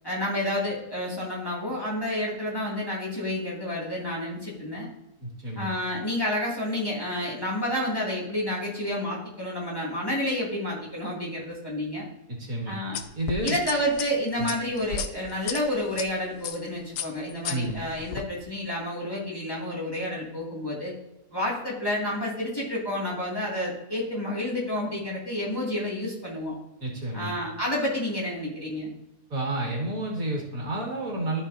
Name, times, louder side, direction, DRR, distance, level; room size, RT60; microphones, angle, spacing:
voice 1, 0.0-4.9 5.6-12.1 12.7-13.0 13.4-20.9 21.3-26.6 27.1-28.9, left 1 dB, 15° left, -5 dB, 2.3 m, -30 dB
voice 2, 5.2-5.7 12.4-12.7 13.2-13.6 14.4-14.5 17.5-17.8 26.8-27.3 29.3-31.4, right 1 dB, 65° right, -1 dB, 2.4 m, -30 dB
sound 1, 12.9-16.1 16.4-16.7 17.0-18.2, left 7 dB, 85° left, 1.2 m, -34 dB
14.0 x 5.3 x 2.7 m, 0.93 s
omnidirectional pair, 1.6 m